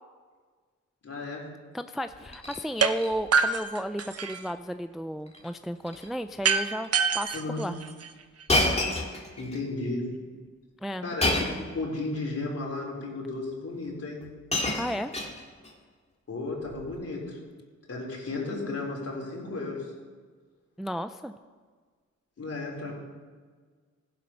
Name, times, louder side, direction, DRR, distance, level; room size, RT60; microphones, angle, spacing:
voice 1, 1.0-1.5 7.3-7.7 9.4-10.1 11.0-14.2 16.3-17.4 17.9-19.9 22.4-22.9, left 2 dB, 50° left, -2 dB, 3.8 m, -34 dB
voice 2, 1.7-7.8 10.8-11.1 14.8-15.1 20.8-21.3, equal, ahead, 10 dB, 0.4 m, -33 dB
Shatter, 2.1-2.6 3.0-3.4 3.8-4.0 4.3-4.4 5.3-5.5 5.8-6.1 6.8-6.9 8.5-9.6 11.2-11.7 12.7-12.8 13.8-13.9 14.2-15.7 16.7-16.9, left 1 dB, 20° left, 2.1 m, -29 dB
sound 1, 2.8-2.9 3.3-4.5 6.4-8.4, right 5 dB, 50° right, 0.8 m, -26 dB
15.0 x 7.7 x 5.7 m, 1.5 s
cardioid pair, 75°, 30 cm